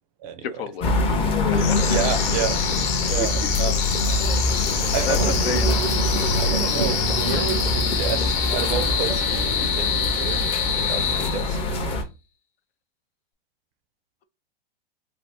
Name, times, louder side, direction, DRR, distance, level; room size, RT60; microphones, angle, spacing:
voice 1, 0.4-0.9 1.5-2.0 3.2-3.3 5.0-5.9, left 9 dB, 85° left, 0.6 m, -31 dB
sound 1, 0.8-12.0, left 2 dB, 20° left, 0.5 m, -24 dB
sound 2, 1.5-11.8, left 7 dB, 50° left, 0.8 m, -26 dB
voice 2, 1.5-2.7 3.1-4.1 4.6-5.4 6.4-12.0, right 9 dB, 40° right, 0.4 m, -31 dB
sound 3, 5.2-10.0, right 5 dB, 90° right, 0.9 m, -32 dB
2.7 x 2.4 x 3.3 m
hypercardioid pair, 130°, 29 cm